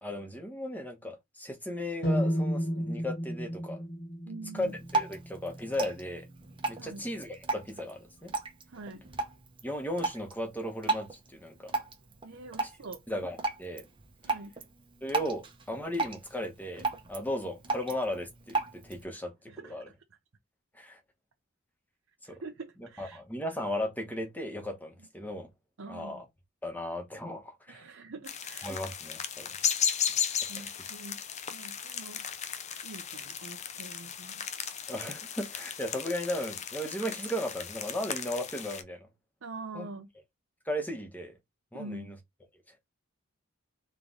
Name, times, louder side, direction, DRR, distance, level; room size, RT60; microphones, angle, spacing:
voice 1, 0.0-3.8 4.5-6.3 6.7-8.3 9.6-11.7 13.1-13.8 15.0-16.8 17.1-19.3 19.7-19.9 20.7-21.0 22.2-22.4 23.0-25.5 25.9-26.2 26.6-27.8 28.6-29.5 34.9-39.1 39.7-39.9 40.7-41.3 41.7-42.2 42.7-42.8, left 1 dB, 10° left, 1.1 m, -36 dB
sound 1, 2.0-6.0, equal, 50° left, 1.2 m, -32 dB
voice 2, 4.3-4.8 6.8-7.0 8.7-9.0 12.2-13.0 14.2-14.5 19.5-19.9 22.4-23.2 25.8-26.2 27.7-28.9 30.2-31.2 31.5-32.2 32.8-34.4 39.4-40.1 41.7-42.1, right 3 dB, 65° right, 0.7 m, -45 dB
Drip, 4.5-19.0, right 3 dB, 25° right, 0.9 m, -36 dB
sound 2, 28.2-38.8, left 8 dB, 30° left, 0.5 m, -35 dB
3.7 x 3.3 x 3.9 m
head